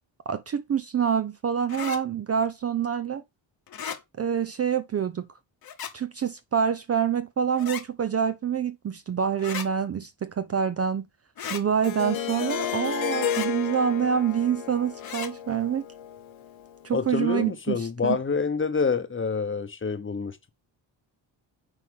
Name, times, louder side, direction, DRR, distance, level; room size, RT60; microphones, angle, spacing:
voice 1, 0.3-3.2 4.2-5.3 5.9-11.1 11.5-15.9 16.8-18.2, right 7 dB, 35° right, 0.5 m, -26 dB
sound 1, 1.7-2.0 3.7-4.0 5.6-5.9 7.6-7.8 9.4-9.7 11.4-11.6 13.2-13.5 15.0-15.3, left 8 dB, 50° left, 1.2 m, -35 dB
Harp, 11.8-16.8, left 9 dB, 80° left, 1.2 m, -32 dB
voice 2, 16.9-20.4, left 5 dB, 25° left, 0.9 m, -27 dB
9.7 x 4.0 x 3.5 m
cardioid pair, 115°, 46 cm